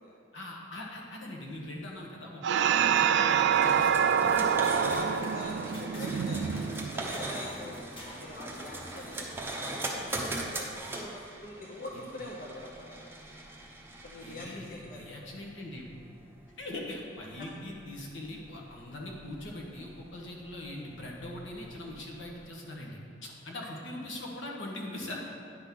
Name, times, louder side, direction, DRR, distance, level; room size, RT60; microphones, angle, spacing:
voice 1, 0.3-4.6 5.1-6.6 11.9-12.1 14.2-15.9 16.6-25.3, left 1 dB, 80° left, -2 dB, 1.3 m, -42 dB
sound 1, 2.4-7.2, right 7 dB, 65° right, 0.3 m, -26 dB
sound 2, 3.5-22.4, right 2 dB, 10° right, 0.8 m, -41 dB
sound 3, 4.3-5.4 5.7-6.3 6.6-6.7 7.1-8.3, left 1 dB, 30° left, 1.2 m, -47 dB
voice 2, 5.3-6.7 6.9-7.8 8.2-10.0 10.3-10.7 10.9-13.0 14.0-15.1 17.4-17.5, left 1 dB, 50° left, -2 dB, 0.7 m, -44 dB
9.8 x 3.7 x 5.9 m, 2.4 s
head